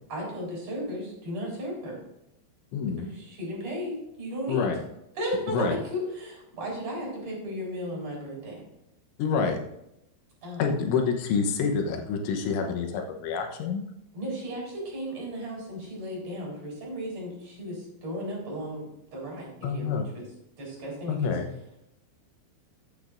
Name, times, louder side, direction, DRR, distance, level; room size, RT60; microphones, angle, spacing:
voice 1, 0.1-2.0 2.9-4.7 5.1-8.6 10.4-10.8 14.1-20.0 20.6-21.3, equal, 35° right, -3 dB, 4.9 m, -35 dB
voice 2, 2.7-3.1 4.5-4.8 5.5-5.8 9.2-9.6 10.6-13.8 19.6-20.1 21.1-21.5, left 5 dB, 85° left, 4 dB, 3.5 m, -27 dB
14.5 x 8.7 x 2.6 m, 0.84 s
omnidirectional pair, 5.3 m